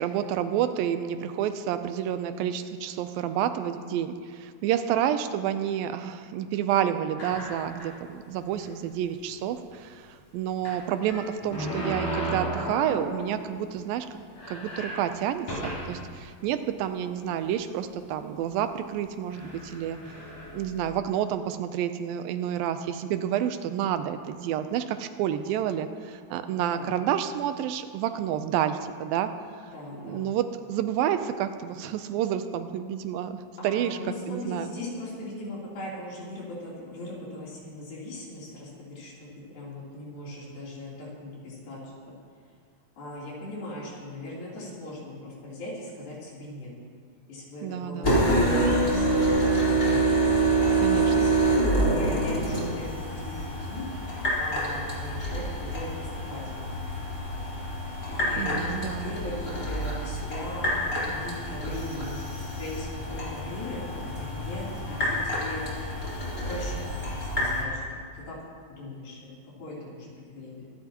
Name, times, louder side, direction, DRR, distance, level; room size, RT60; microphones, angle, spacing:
voice 1, 0.0-14.1 14.5-20.0 20.5-29.3 30.0-33.4 33.6-34.0 34.3-34.7 47.6-48.2 50.8-51.3 58.4-59.1, right 10 dB, 85° right, 9 dB, 2.4 m, -29 dB
sound 1, 7.2-8.0 8.6-8.7 9.0-9.1 10.6-13.5 13.9-14.0 14.3-16.1 16.8-16.9 17.8-18.0 18.8-18.9 19.3-20.9, right 1 dB, 50° left, 4.9 m, -35 dB
voice 2, 26.5-26.9 29.7-30.3 33.6-42.2 43.0-46.7 47.3-50.2 50.9-51.3 51.8-53.9 54.3-56.7 58.1-65.7 66.4-67.8 68.1-68.4 68.7-69.3 69.6-70.7, left 1 dB, 85° left, -6 dB, 5.3 m, -39 dB
sound 2, 48.0-67.6, right 1 dB, 25° left, 4.1 m, -27 dB
24.5 x 11.5 x 3.0 m, 2.1 s
omnidirectional pair, 4.1 m